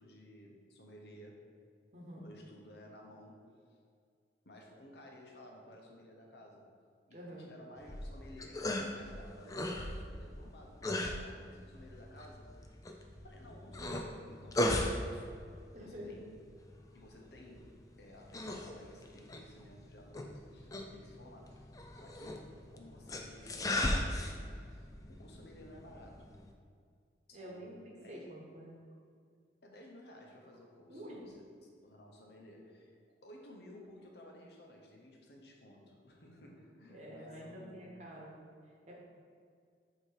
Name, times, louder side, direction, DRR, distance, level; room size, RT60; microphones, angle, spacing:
voice 1, 0.0-1.5 2.2-3.8 4.4-6.7 7.1-12.6 13.2-15.4 15.8-16.4 16.9-26.3 27.3-28.3 29.6-32.9 33.2-37.9, left 1 dB, 65° left, 0 dB, 1.0 m, -55 dB
voice 2, 1.9-2.3 7.1-7.5 15.7-16.2 27.3-28.7 30.9-31.2 36.9-38.3 38.6-39.0, equal, 40° right, -3 dB, 1.1 m, -48 dB
sound 1, 7.8-26.5, left 1 dB, 20° left, 0.4 m, -39 dB
7.7 x 3.0 x 4.8 m, 2.2 s
head